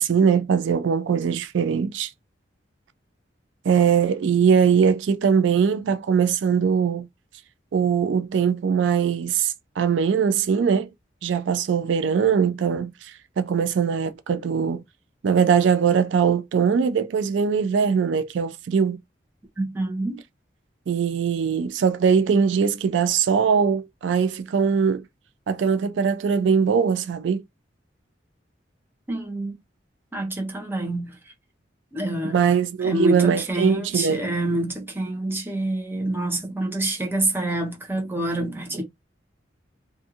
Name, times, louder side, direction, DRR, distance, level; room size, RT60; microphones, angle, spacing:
voice 1, 0.0-2.1 3.6-7.1 7.7-10.9 11.2-14.8 15.2-19.0 20.9-25.0 25.5-27.4 32.3-34.2, right 6 dB, 90° right, 0.4 m, -21 dB
voice 2, 19.6-20.2 29.1-29.6 30.1-31.2 31.9-32.5 32.8-38.8, right 1 dB, 10° right, 0.8 m, -27 dB
2.5 x 2.4 x 2.7 m
head